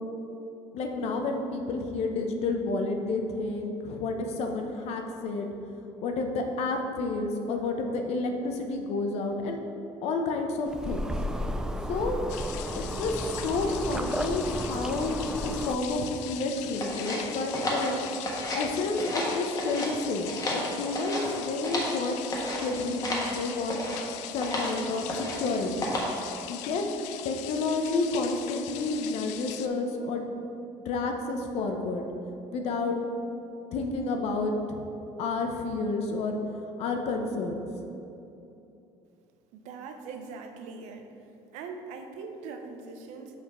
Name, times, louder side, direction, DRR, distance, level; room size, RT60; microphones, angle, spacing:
voice 1, 0.7-5.5 6.0-9.6 10.0-11.0 11.9-12.2 12.7-18.0 18.5-22.2 22.6-23.8 24.3-25.9 26.5-26.9 27.2-30.3 30.8-32.0 32.5-33.0 33.7-34.9 35.2-36.4 36.8-37.6, left 3 dB, 65° left, 4 dB, 0.8 m, -30 dB
sound 1, 10.7-15.8, equal, 5° right, 0.3 m, -33 dB
sound 2, 12.3-29.7, left 12 dB, 80° left, 0.4 m, -41 dB
sound 3, 16.8-18.7 18.9-19.9 20.2-22.0 22.3-22.7 23.0-23.3 23.7-24.0 24.4-24.7 25.1-25.5 25.8-26.2, left 1 dB, 30° left, 1.3 m, -32 dB
voice 2, 39.5-41.1 41.5-43.4, right 4 dB, 75° right, 5 dB, 0.7 m, -41 dB
5.9 x 5.0 x 4.4 m, 2.8 s
cardioid pair, 115°, 12 cm